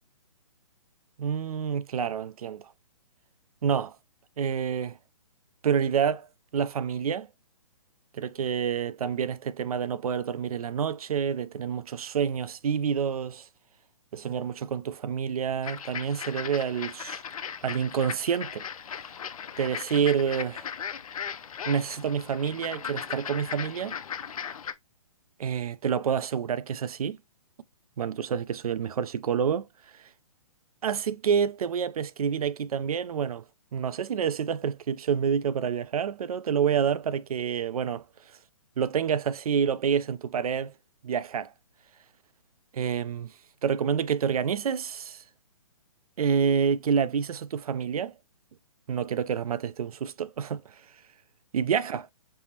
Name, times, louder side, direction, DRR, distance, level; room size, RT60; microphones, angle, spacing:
voice 1, 1.2-2.7 3.6-4.0 4.4-5.0 5.6-6.3 6.5-7.3 8.1-13.5 14.1-17.2 17.6-18.6 19.6-20.7 21.7-24.0 25.4-27.2 28.0-29.7 29.9-30.1 30.8-33.4 33.7-38.1 38.8-40.7 41.0-41.5 42.7-43.3 43.6-45.2 46.2-48.1 48.9-50.8 51.5-52.1, right 7 dB, 85° right, 0.4 m, -28 dB
sound 1, 15.6-24.7, left 8 dB, 80° left, 0.5 m, -38 dB
5.4 x 2.1 x 2.7 m
hypercardioid pair, 160°, 18 cm